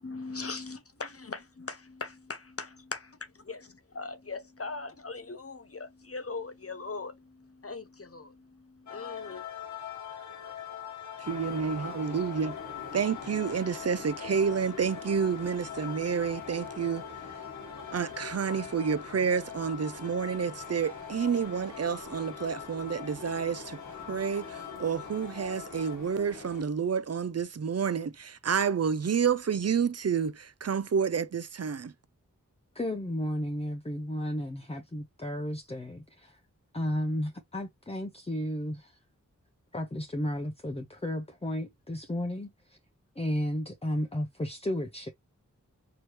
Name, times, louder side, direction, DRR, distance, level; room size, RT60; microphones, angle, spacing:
voice 1, 0.0-3.0 3.5-3.6 3.9-9.4, left 4 dB, 45° left, 0.8 m, -40 dB
sound 1, 8.9-26.0, left 9 dB, 65° left, 1.2 m, -43 dB
sound 2, 11.2-26.6, left 3 dB, 85° left, 1.5 m, -45 dB
voice 2, 11.2-12.5 12.9-17.0 17.9-23.8 24.1-31.9, right 6 dB, 55° right, 0.5 m, -29 dB
voice 3, 32.7-36.4 36.7-39.0 39.7-42.8 43.2-45.1, left 1 dB, 20° left, 0.7 m, -33 dB
4.8 x 3.0 x 3.0 m
wide cardioid pair, 60°, 31 cm